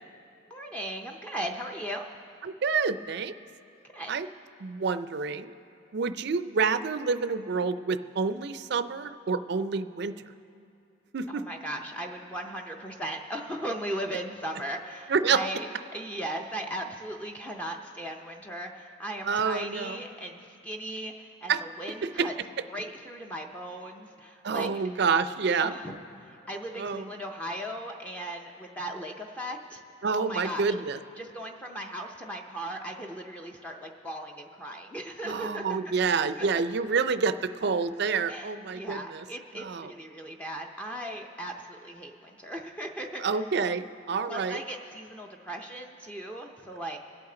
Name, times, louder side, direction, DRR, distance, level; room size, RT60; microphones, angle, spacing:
voice 1, 0.5-2.1 3.9-4.1 11.3-15.7 15.9-22.3 22.7-24.7 25.6-29.8 30.2-30.7 31.2-36.5 38.3-43.2 44.3-47.0, right 1 dB, 5° left, 1 dB, 0.5 m, -37 dB
voice 2, 2.4-3.3 4.1-4.3 4.6-5.5 5.9-10.1 11.1-11.4 15.1-15.4 19.2-20.0 21.5-21.6 22.0-22.3 24.4-25.8 26.8-27.1 30.0-31.0 35.2-39.2 39.5-39.9 43.2-44.6, right 5 dB, 55° right, 12 dB, 0.4 m, -28 dB
26.0 x 8.8 x 3.8 m, 2.7 s
head